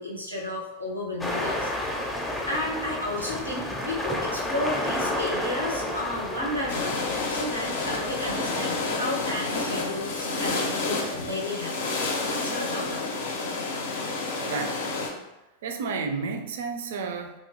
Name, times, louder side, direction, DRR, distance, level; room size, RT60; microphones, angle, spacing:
voice 1, 0.0-2.1 2.5-7.0 7.3-13.3, left 1 dB, 85° right, -2 dB, 0.7 m, -33 dB
sound 1, 1.2-9.6, left 1 dB, 5° left, 0.5 m, -32 dB
sound 2, 6.7-15.1, left 3 dB, 60° left, 0.5 m, -30 dB
voice 2, 14.4-14.8 15.6-17.4, right 4 dB, 60° right, 6 dB, 0.3 m, -31 dB
2.9 x 2.4 x 2.7 m, 1.0 s
figure-of-eight pair, 90°, 0 cm